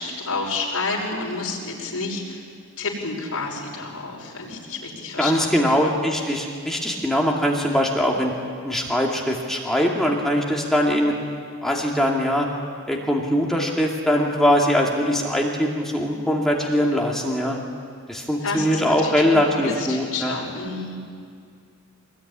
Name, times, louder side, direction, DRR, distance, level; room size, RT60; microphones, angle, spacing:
voice 1, 0.0-2.4 2.8-5.7 18.4-21.0, left 3 dB, 75° left, -1 dB, 5.7 m, -30 dB
voice 2, 5.2-8.3 8.6-11.1 11.6-12.5 12.9-17.6 18.1-20.4, equal, ahead, -2 dB, 2.4 m, -21 dB
24.0 x 20.5 x 10.0 m, 2.2 s
head